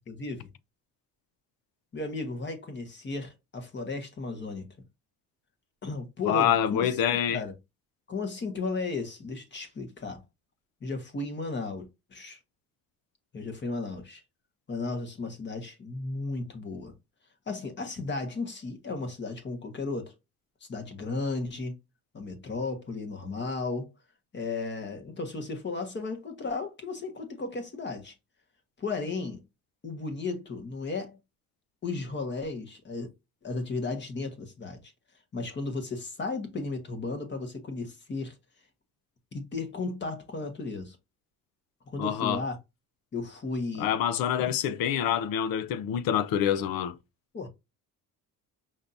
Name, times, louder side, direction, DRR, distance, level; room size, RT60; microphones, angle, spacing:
voice 1, 0.1-0.5 1.9-4.7 5.8-7.5 8.1-10.2 10.8-12.4 13.3-14.2 14.7-16.9 17.5-20.1 20.6-21.8 22.1-23.9 24.3-28.1 28.8-29.4 29.8-31.2 31.8-33.1 33.4-34.9 35.3-38.4 39.3-41.0 41.9-42.6 43.1-43.9 44.5-44.6 47.3-47.5, left 3 dB, 30° left, 1.4 m, -34 dB
voice 2, 6.3-7.4 42.0-42.4 43.8-47.0, left 9 dB, 90° left, 0.7 m, -26 dB
5.7 x 3.3 x 2.6 m
cardioid pair, 140°, 34 cm